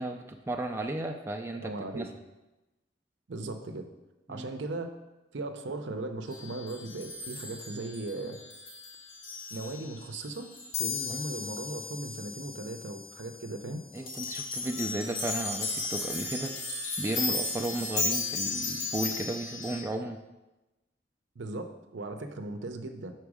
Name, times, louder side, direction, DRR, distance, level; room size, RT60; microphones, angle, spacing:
voice 1, 0.0-2.1 4.3-4.5 11.1-11.2 13.9-16.6 17.0-20.2, right 2 dB, 15° right, 3 dB, 0.3 m, -34 dB
voice 2, 1.5-2.0 3.3-3.9 4.3-4.9 5.3-8.4 9.5-10.5 10.8-13.8 21.4-23.1, right 2 dB, 80° right, 7 dB, 0.6 m, -37 dB
sound 1, 6.3-11.2 11.5-11.6 12.1-12.3 13.9-19.8, left 3 dB, 80° left, 2.0 m, -35 dB
sound 2, 10.7-14.3, left 7 dB, 35° left, 0.5 m, -39 dB
6.1 x 4.5 x 4.8 m, 1.0 s
head